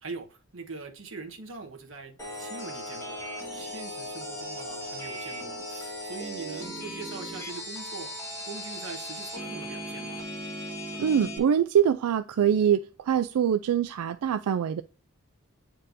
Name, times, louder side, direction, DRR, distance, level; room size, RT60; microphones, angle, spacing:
voice 1, 0.0-3.2 3.5-8.1 8.4-10.2, right 4 dB, 60° right, 1.3 m, -42 dB
sound 1, 2.2-11.4, equal, 10° left, 1.8 m, -37 dB
voice 2, 11.0-14.8, right 8 dB, 85° right, 0.3 m, -24 dB
8.8 x 4.4 x 2.6 m
head